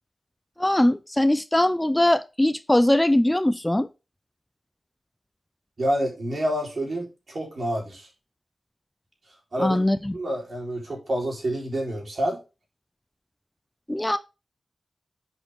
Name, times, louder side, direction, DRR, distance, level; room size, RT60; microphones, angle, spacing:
voice 1, 0.6-3.9 9.6-10.2 13.9-14.2, left 1 dB, 15° left, 0.5 m, -21 dB
voice 2, 5.8-8.1 9.5-9.8 10.1-12.4, right 1 dB, 60° right, 3.9 m, -28 dB
8.1 x 5.6 x 3.6 m
cardioid pair, 50°, 0 cm